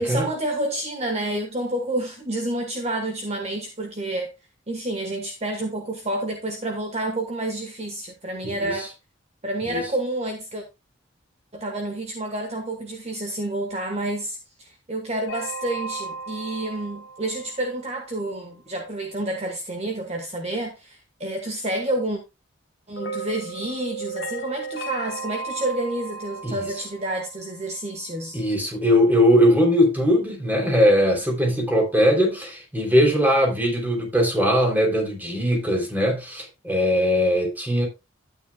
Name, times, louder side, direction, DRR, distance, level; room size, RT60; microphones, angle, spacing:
voice 1, 0.0-4.3 4.7-8.9 9.4-10.6 11.5-22.2 22.9-28.4, right 1 dB, 35° right, 1.3 m, -29 dB
voice 2, 8.4-8.8 9.6-9.8 26.4-26.7 28.3-37.9, equal, 10° right, 3.2 m, -20 dB
sound 1, 15.3-18.3 23.0-27.9, right 3 dB, 70° left, 1.7 m, -35 dB
12.0 x 9.1 x 2.3 m
head